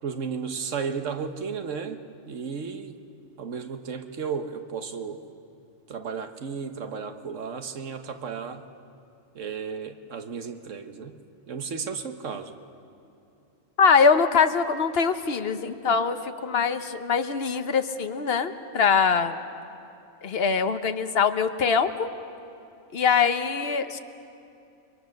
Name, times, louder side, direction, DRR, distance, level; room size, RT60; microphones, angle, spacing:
voice 1, 0.0-2.0 2.3-3.0 3.4-5.2 5.9-8.6 9.3-11.2 11.5-12.5, right 6 dB, 75° right, 7 dB, 1.5 m, -34 dB
voice 2, 13.8-19.4 20.2-22.1 22.9-24.0, left 5 dB, 55° left, 9 dB, 1.1 m, -23 dB
30.0 x 22.5 x 6.5 m, 2.6 s
omnidirectional pair, 1.3 m